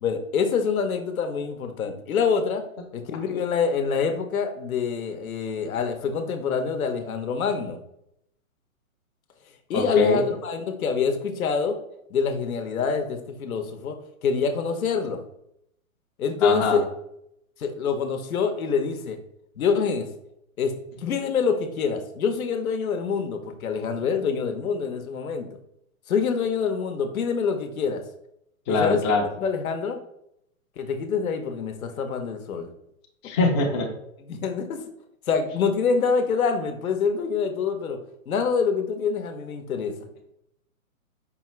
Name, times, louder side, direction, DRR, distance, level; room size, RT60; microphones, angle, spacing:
voice 1, 0.0-2.6 2.9-7.8 9.7-11.8 12.1-14.0 14.2-15.2 16.2-16.8 17.6-19.2 19.6-20.1 20.6-20.7 21.0-25.5 26.1-28.0 28.7-29.0 29.4-30.0 30.8-32.7 34.3-34.9 35.3-38.0 38.3-40.1, left 5 dB, 75° left, 6 dB, 0.8 m, -26 dB
voice 2, 9.7-10.2 16.4-16.8 28.7-29.3 33.2-33.9, left 3 dB, 20° left, 0 dB, 0.4 m, -23 dB
5.2 x 2.4 x 3.1 m, 0.77 s
hypercardioid pair, 130°, 42 cm